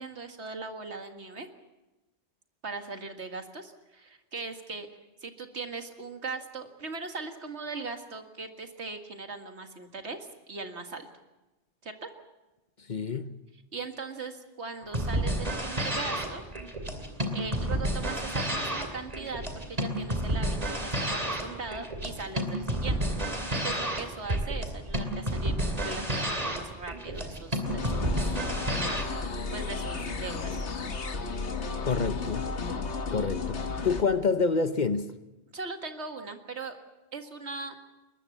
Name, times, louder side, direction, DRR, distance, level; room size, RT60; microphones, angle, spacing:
voice 1, 0.0-1.5 2.6-4.9 5.2-11.1 11.8-12.1 13.7-16.4 17.3-23.0 23.5-28.4 29.5-30.5 35.5-36.8 37.1-37.7, right 4 dB, 75° right, 2.2 m, -39 dB
voice 2, 12.9-13.3 31.9-32.5 33.1-35.2, left 4 dB, 45° left, 1.0 m, -27 dB
sound 1, 14.8-29.0, right 1 dB, 35° right, 2.9 m, -30 dB
sound 2, 27.7-34.0, left 4 dB, 80° left, 1.8 m, -33 dB
22.0 x 21.0 x 7.2 m
omnidirectional pair, 1.1 m